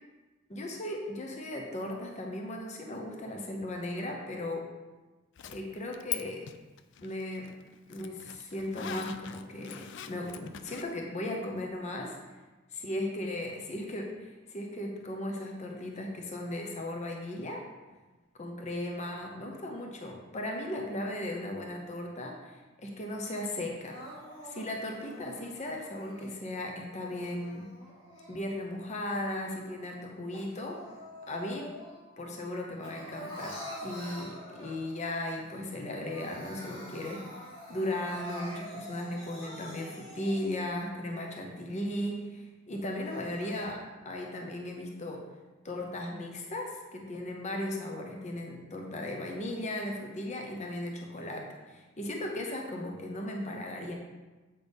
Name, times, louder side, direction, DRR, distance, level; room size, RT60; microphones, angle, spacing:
voice 1, 0.5-4.7 5.5-6.5 7.0-7.5 7.9-12.2 12.8-17.6 18.4-24.0 24.4-27.6 28.3-30.8 31.3-31.7 32.2-45.2 45.6-53.9, left 1 dB, 35° left, 1 dB, 0.8 m, -37 dB
Zipper (clothing), 5.4-6.2 6.5-10.8, left 10 dB, 65° left, 0.4 m, -41 dB
Crying sobbing, 23.9-26.3 27.0-28.7 29.2-32.1 32.4-35.1 35.5-35.6 35.9-40.7 41.3-41.4 41.9-42.0 42.8-43.7, equal, 80° left, 2.0 m, -46 dB
8.1 x 5.9 x 3.6 m, 1.2 s
head